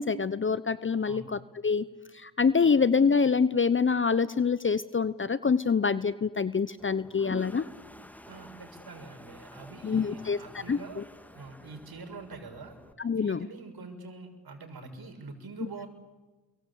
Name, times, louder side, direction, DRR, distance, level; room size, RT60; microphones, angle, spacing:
voice 1, 0.0-1.9 2.1-7.6 9.8-11.0 13.0-13.5, left 5 dB, 25° left, 17 dB, 1.0 m, -26 dB
Toilet flush, 6.8-12.9, equal, 5° left, 2.1 m, -49 dB
voice 2, 8.3-11.0 11.3-12.8 13.1-15.9, right 3 dB, 50° right, 6 dB, 6.5 m, -45 dB
29.5 x 23.0 x 8.5 m, 1.2 s
hypercardioid pair, 50°, 48 cm